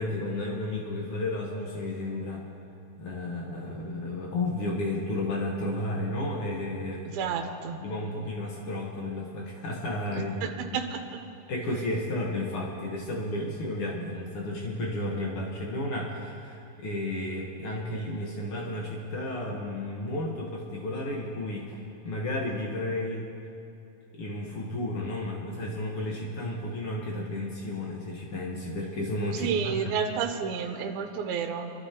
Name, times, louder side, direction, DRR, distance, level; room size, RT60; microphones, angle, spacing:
voice 1, 0.0-2.5 3.0-7.2 7.7-10.5 11.5-23.3 24.2-29.9, left 1 dB, 70° left, -2 dB, 1.3 m, -32 dB
voice 2, 7.1-7.8 10.4-11.0 29.3-31.7, right 7 dB, 75° right, 4 dB, 2.6 m, -30 dB
25.5 x 13.0 x 2.9 m, 2.7 s
omnidirectional pair, 4.5 m